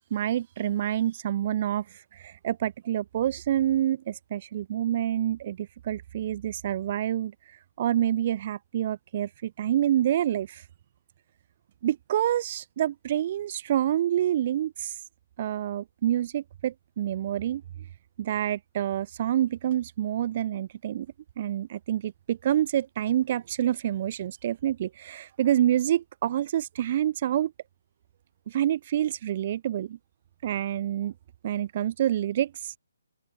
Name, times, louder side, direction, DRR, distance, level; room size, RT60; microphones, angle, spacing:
voice 1, 0.1-1.8 2.1-7.3 7.8-10.6 11.8-14.9 15.4-17.6 18.2-21.1 21.4-27.5 28.5-30.0 30.4-31.1 31.4-32.7, right 11 dB, 35° right, 6.2 m, -27 dB
open air
figure-of-eight pair, 150°, 0 cm